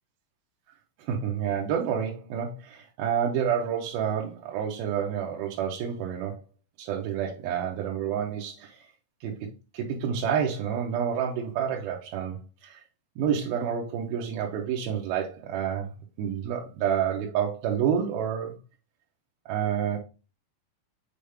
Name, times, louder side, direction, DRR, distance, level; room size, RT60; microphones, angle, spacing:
voice 1, 1.0-6.4 6.8-8.9 9.2-9.5 9.7-12.8 13.2-15.9 16.2-18.6 19.5-20.0, right 8 dB, 90° right, 2.8 m, -29 dB
7.1 x 4.3 x 3.4 m
omnidirectional pair, 4.1 m